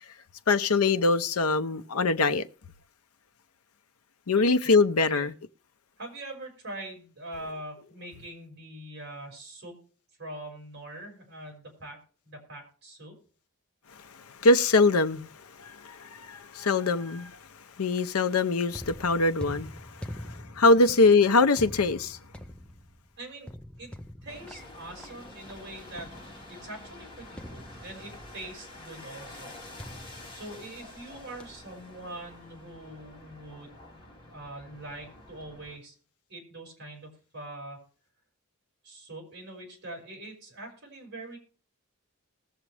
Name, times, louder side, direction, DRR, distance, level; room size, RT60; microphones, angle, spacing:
voice 1, 0.5-2.5 4.3-5.3 14.4-15.3 15.6-17.4 17.8-22.2, left 3 dB, 90° left, 0.7 m, -23 dB
voice 2, 6.0-9.7 10.2-12.0 12.2-13.1 20.7-21.0 23.2-23.5 23.8-23.9 24.2-26.1 26.5-29.5 30.3-33.7 34.3-36.0 36.3-37.8 38.8-41.4, right 1 dB, 50° right, 5.6 m, -43 dB
sound 1, 18.7-26.6 27.4-28.4 29.8-31.1 31.4-31.7, equal, 5° left, 0.5 m, -44 dB
sound 2, 24.3-35.8, left 2 dB, 25° left, 3.3 m, -48 dB
20.5 x 7.3 x 3.3 m
head